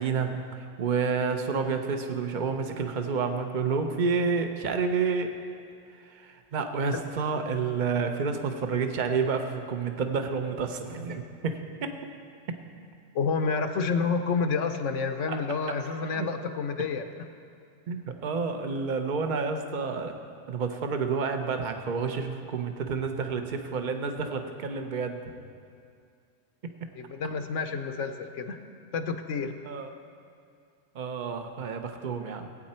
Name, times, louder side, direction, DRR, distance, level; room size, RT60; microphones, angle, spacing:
voice 1, 0.0-5.4 5.9-12.0 12.5-12.6 15.3-15.4 16.1-16.3 17.9-20.2 20.5-25.3 26.6-26.9 29.4-29.9 30.9-32.5, right 5 dB, 45° right, 6 dB, 0.9 m, -30 dB
voice 2, 13.1-17.0 27.0-28.6 28.9-29.5, left 5 dB, 75° left, 7 dB, 1.1 m, -29 dB
18.5 x 8.9 x 4.3 m, 2.3 s
omnidirectional pair, 1.3 m